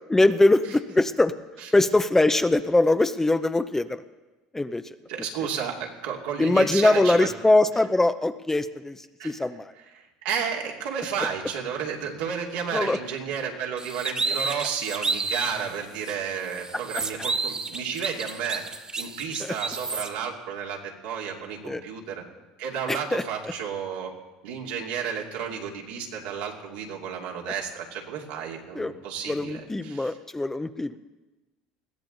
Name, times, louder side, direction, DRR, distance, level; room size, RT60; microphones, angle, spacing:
voice 1, 0.1-1.3 1.7-4.0 4.5-4.8 6.4-9.7 12.7-13.0 19.4-19.5 21.6-21.8 22.9-23.2 28.8-28.9 29.3-31.0, left 2 dB, 10° left, 10 dB, 0.8 m, -22 dB
voice 2, 5.1-7.3 9.2-9.3 9.8-18.6 19.0-22.2 22.6-24.1 24.4-30.1, right 7 dB, 80° right, -1 dB, 2.8 m, -32 dB
sound 1, 13.8-15.6 16.0-16.1 16.5-20.1, right 4 dB, 25° right, 1.8 m, -30 dB
21.0 x 15.5 x 4.0 m, 1.1 s
hypercardioid pair, 80°, 3 cm